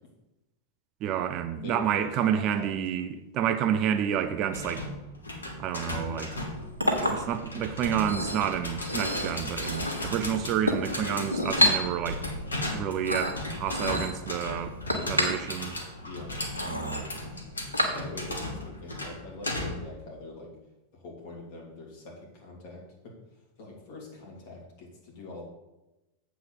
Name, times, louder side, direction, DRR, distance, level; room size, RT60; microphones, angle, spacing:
voice 1, 1.0-4.9 5.6-6.3 7.0-12.2 12.7-14.8 15.1-15.8 16.7-17.0, right 9 dB, 35° right, 0.6 m, -29 dB
voice 2, 1.6-2.7 16.0-16.4 17.8-20.5 20.9-23.1 23.6-25.4, left 2 dB, 50° left, 2.9 m, -43 dB
sound 1, 4.5-20.0, left 1 dB, 75° left, 1.4 m, -36 dB
Chink clink, 6.4-18.4, equal, 85° right, 1.4 m, -31 dB
7.9 x 4.7 x 7.0 m
figure-of-eight pair, 90°, 0 cm